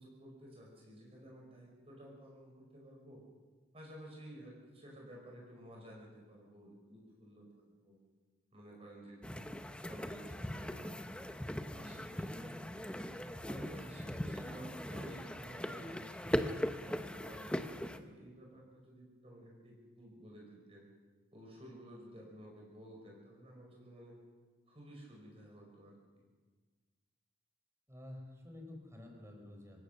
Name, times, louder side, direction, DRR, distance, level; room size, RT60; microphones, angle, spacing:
voice 1, 0.0-3.2 3.7-8.0 8.5-9.5 9.8-11.2 11.7-12.8 13.5-16.4 16.8-20.9 21.3-24.2 24.7-26.0, right 1 dB, 30° right, -1 dB, 5.2 m, -53 dB
sound 1, 9.2-18.0, equal, 5° left, 0.8 m, -40 dB
voice 2, 12.3-12.6 27.9-29.8, left 1 dB, 15° right, 2 dB, 4.1 m, -51 dB
26.0 x 16.5 x 6.7 m, 1.4 s
head